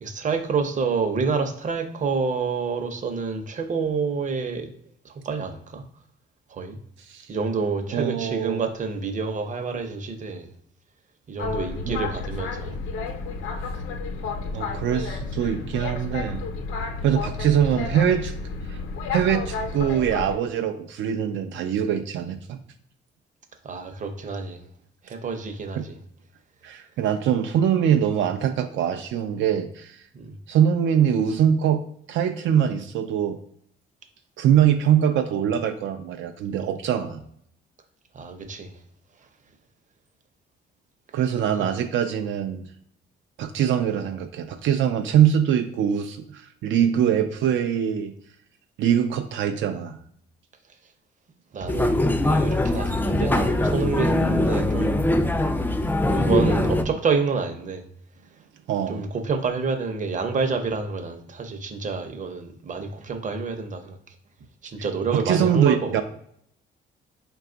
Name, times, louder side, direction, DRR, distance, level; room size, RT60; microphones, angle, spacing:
voice 1, 0.0-4.7 5.0-5.8 6.5-6.8 7.3-10.5 11.3-12.7 23.6-24.6 25.1-25.9 30.1-30.3 38.1-38.7 51.5-52.0 52.2-55.0 56.0-57.8 58.9-64.0 64.6-66.0, right 4 dB, 40° right, 7 dB, 0.7 m, -28 dB
voice 2, 7.0-7.3 7.9-8.6 11.8-12.0 14.5-16.4 17.0-18.3 18.7-18.8 19.1-22.6 25.8-25.9 26.6-30.0 30.5-31.8 32.1-33.4 34.4-37.2 41.1-42.7 43.4-48.1 48.8-50.0 58.7-59.0 65.1-66.0, right 9 dB, 75° right, 7 dB, 0.4 m, -23 dB
Boat Water vehicle, 11.4-20.4, left 4 dB, 85° left, 0.7 m, -31 dB
sound 1, 51.7-56.8, left 1 dB, 10° left, 0.4 m, -22 dB
4.6 x 2.3 x 3.8 m, 0.68 s
cardioid pair, 90°, 20 cm